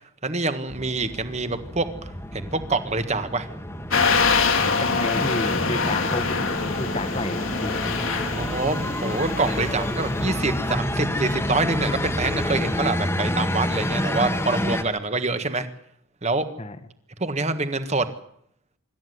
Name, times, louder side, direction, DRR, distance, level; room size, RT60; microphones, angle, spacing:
voice 1, 0.2-3.5 8.3-15.7 16.2-16.5 17.2-18.1, right 3 dB, 30° right, 10 dB, 1.7 m, -26 dB
sound 1, 0.7-14.8, left 1 dB, 10° left, 1.7 m, -28 dB
sound 2, 3.9-10.6, left 5 dB, 60° left, 2.5 m, -25 dB
voice 2, 4.8-6.3 6.7-7.9 16.6-16.8, left 2 dB, 30° left, 10 dB, 1.6 m, -30 dB
25.5 x 13.5 x 9.6 m, 0.71 s
head